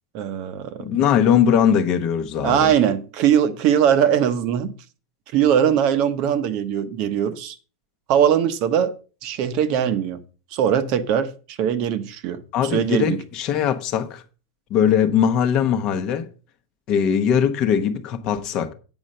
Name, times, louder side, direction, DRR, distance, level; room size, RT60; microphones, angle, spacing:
voice 1, 0.1-1.0 2.4-4.7 5.3-7.6 8.1-8.9 9.2-10.2 10.5-13.2, right 9 dB, 40° right, 0.9 m, -21 dB
voice 2, 0.8-2.7 12.5-14.2 14.7-16.3 16.9-18.7, left 8 dB, 35° left, 0.9 m, -20 dB
8.9 x 5.4 x 6.5 m
supercardioid pair, 165°, 2 cm